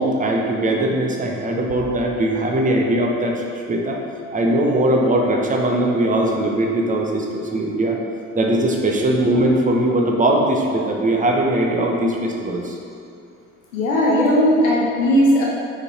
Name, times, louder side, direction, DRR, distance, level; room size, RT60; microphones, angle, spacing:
voice 1, 0.0-4.0 4.3-8.0 8.4-12.8 14.1-14.2, right 1 dB, 20° right, 0 dB, 0.9 m, -20 dB
voice 2, 13.7-15.5, equal, 75° left, -3 dB, 0.8 m, -17 dB
4.9 x 4.8 x 4.3 m, 2.4 s
figure-of-eight pair, 50°, 40 cm